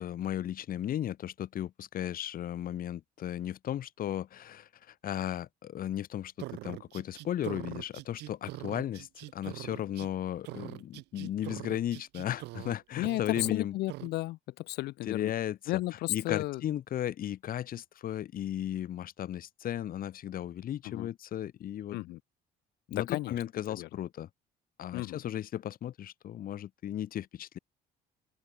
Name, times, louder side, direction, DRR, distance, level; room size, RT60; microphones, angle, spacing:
voice 1, 0.0-13.7 15.1-15.6 16.1-22.0 22.9-24.3 24.8-27.6, left 11 dB, 60° left, 2.6 m, -35 dB
sound 1, 6.4-10.1 10.4-12.8 13.0-13.6 13.9-14.1, right 19 dB, 85° right, 2.4 m, -42 dB
voice 2, 13.0-15.3 15.7-16.6 20.8-21.1 21.9-22.2 22.9-23.4 23.7-23.9 24.9-25.2, left 18 dB, 80° left, 0.7 m, -34 dB
open air
cardioid pair, 110°, 17 cm